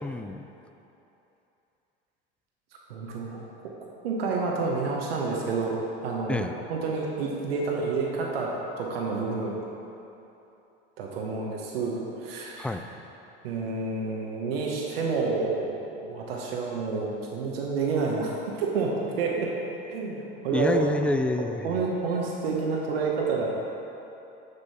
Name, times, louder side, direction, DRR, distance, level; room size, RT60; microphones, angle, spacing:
voice 1, 0.0-0.4 6.3-6.6 12.6-12.8 20.5-22.0, left 1 dB, 5° left, 7 dB, 0.3 m, -28 dB
voice 2, 2.9-3.4 4.0-5.7 6.0-8.5 8.8-9.6 11.0-12.8 13.4-18.9 19.2-19.5 19.9-20.9 21.6-23.5, right 4 dB, 80° right, -2 dB, 1.1 m, -29 dB
7.0 x 6.7 x 4.2 m, 3.0 s
hypercardioid pair, 80°, 29 cm